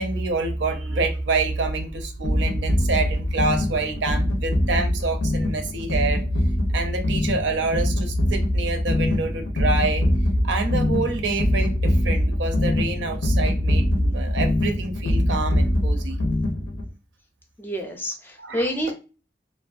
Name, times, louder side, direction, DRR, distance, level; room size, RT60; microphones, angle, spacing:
voice 1, 0.0-6.2 6.7-10.0 10.4-16.2 18.4-18.7, right 3 dB, 80° right, 6 dB, 0.5 m, -27 dB
sound 1, 2.2-16.9, left 1 dB, 90° left, 0.6 m, -23 dB
voice 2, 17.6-18.9, equal, 10° left, 3 dB, 0.3 m, -28 dB
2.5 x 2.2 x 2.3 m, 0.33 s
head